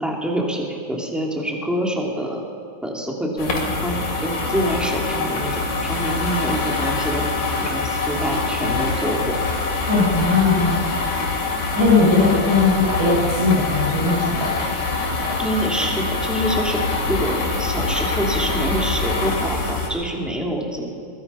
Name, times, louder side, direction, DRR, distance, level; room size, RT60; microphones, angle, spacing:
voice 1, 0.0-2.4 2.8-7.2 7.6-9.4 15.1-20.9, equal, ahead, -1 dB, 2.3 m, -26 dB
sound 1, 3.4-19.9, left 3 dB, 85° left, 4.6 m, -24 dB
voice 2, 9.9-10.8 11.8-14.8, left 3 dB, 90° right, -4 dB, 8.8 m, -19 dB
22.5 x 21.0 x 5.7 m, 2.3 s
omnidirectional pair, 3.5 m